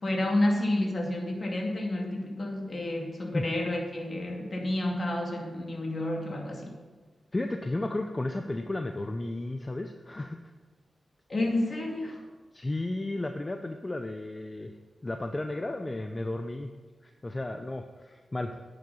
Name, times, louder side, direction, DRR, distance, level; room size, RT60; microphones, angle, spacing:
voice 1, 0.0-6.7 11.3-12.3, left 1 dB, 50° left, 1 dB, 2.3 m, -30 dB
voice 2, 7.3-10.4 12.5-14.7 15.0-16.7 17.0-18.5, left 2 dB, 30° left, 5 dB, 0.7 m, -33 dB
10.5 x 6.8 x 5.5 m, 1.3 s
cardioid pair, 60°, 0 cm